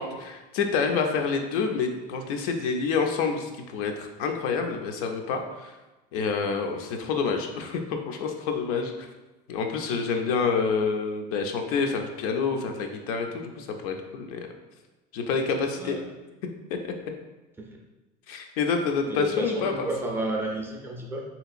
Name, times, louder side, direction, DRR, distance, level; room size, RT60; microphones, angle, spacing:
voice 1, 0.0-5.8 6.1-9.1 9.5-14.5 15.1-16.0 16.8-16.9 18.3-19.9, left 5 dB, 85° left, 4 dB, 0.5 m, -28 dB
voice 2, 15.7-16.1 19.1-21.2, right 1 dB, 10° right, 0 dB, 0.4 m, -31 dB
3.6 x 2.8 x 2.4 m, 1.1 s
cardioid pair, 140°, 18 cm